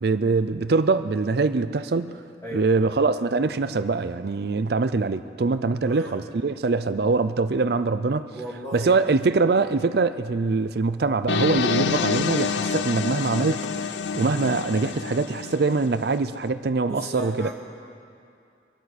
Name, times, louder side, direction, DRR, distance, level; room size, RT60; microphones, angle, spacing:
voice 1, 0.0-2.2 2.5-8.3 8.7-17.5, right 3 dB, 55° right, 12 dB, 0.5 m, -23 dB
voice 2, 5.8-6.1 8.3-8.9 16.9-17.5, right 1 dB, 15° left, -5 dB, 2.5 m, -35 dB
sound 1, 11.3-16.2, left 6 dB, 70° left, 0.5 m, -27 dB
23.5 x 12.5 x 4.2 m, 2.4 s
head